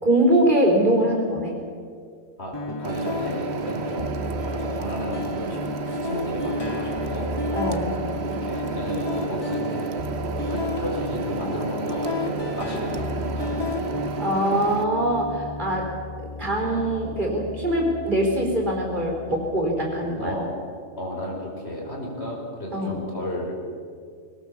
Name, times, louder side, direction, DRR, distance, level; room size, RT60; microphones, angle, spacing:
voice 1, 0.0-1.5 7.5-7.9 14.2-15.9 16.4-20.3 22.7-23.0, right 1 dB, 35° right, -1 dB, 4.3 m, -22 dB
voice 2, 2.4-4.1 4.4-5.6 5.9-7.3 8.4-10.0 10.3-13.9 20.2-20.5 21.0-23.8, left 1 dB, 55° left, -2 dB, 5.1 m, -33 dB
sound 1, 2.5-20.5, left 2 dB, 20° left, 1.1 m, -32 dB
sound 2, 2.8-14.8, right 6 dB, 55° right, 1.3 m, -32 dB
22.0 x 18.5 x 7.2 m, 2.2 s
omnidirectional pair, 1.3 m